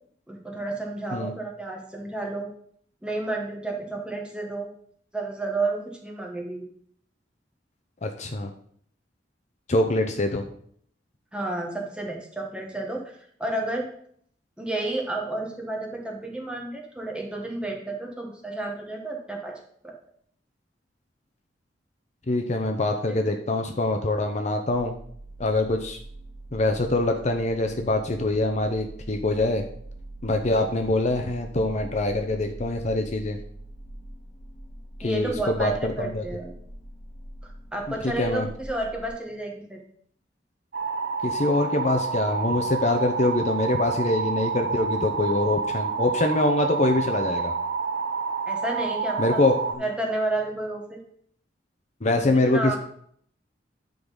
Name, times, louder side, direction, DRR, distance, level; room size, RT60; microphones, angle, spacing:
voice 1, 0.3-2.5 3.0-4.7 5.1-6.6 11.3-13.0 13.4-13.9 14.6-19.6 19.8-19.9 23.1-23.2 35.0-36.5 37.7-39.8 48.5-49.4 49.8-51.0 52.5-52.8, right 2 dB, 5° right, 0 dB, 1.4 m, -31 dB
voice 2, 8.0-8.5 9.7-10.4 22.3-24.9 25.4-26.0 26.5-29.6 30.2-33.4 35.0-36.2 38.0-38.5 41.2-47.5 49.2-49.8 52.0-52.8, left 2 dB, 40° left, 5 dB, 0.7 m, -24 dB
sound 1, 24.7-39.1, right 1 dB, 25° left, 2.1 m, -43 dB
sound 2, 40.7-49.7, right 5 dB, 65° right, 0.8 m, -28 dB
10.0 x 3.9 x 5.4 m, 0.62 s
head